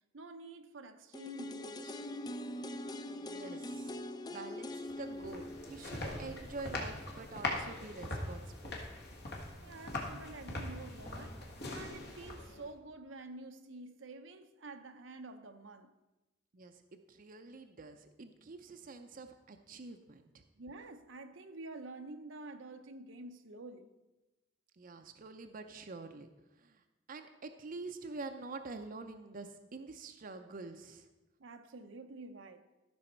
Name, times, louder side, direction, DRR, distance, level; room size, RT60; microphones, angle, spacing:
voice 1, 0.1-2.0 9.6-15.9 20.6-23.9 31.4-32.6, right 2 dB, 80° right, 0.8 m, -49 dB
sound 1, 1.1-7.0 7.3-7.4, left 1 dB, 20° left, 0.4 m, -43 dB
voice 2, 3.1-4.0 4.3-8.8 16.5-20.4 24.8-26.3 26.6-26.8 27.1-31.1, right 3 dB, 45° right, 0.6 m, -47 dB
sound 2, 4.9-12.7, left 2 dB, 60° left, 1.7 m, -41 dB
14.0 x 6.3 x 4.4 m
head